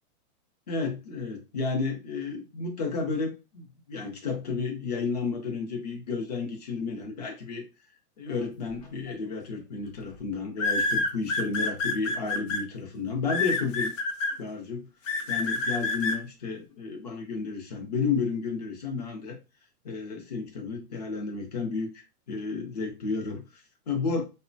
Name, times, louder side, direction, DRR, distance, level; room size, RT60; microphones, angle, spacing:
voice 1, 0.7-7.6 8.2-13.9 14.4-14.9 15.3-19.4 19.8-24.2, left 4 dB, 30° left, 2 dB, 0.4 m, -32 dB
sound 1, 9.1-9.4 10.6-12.6 13.3-14.3 15.1-16.2, left 3 dB, 55° left, 0.7 m, -27 dB
3.0 x 2.1 x 2.4 m, 0.29 s
hypercardioid pair, 150°, 47 cm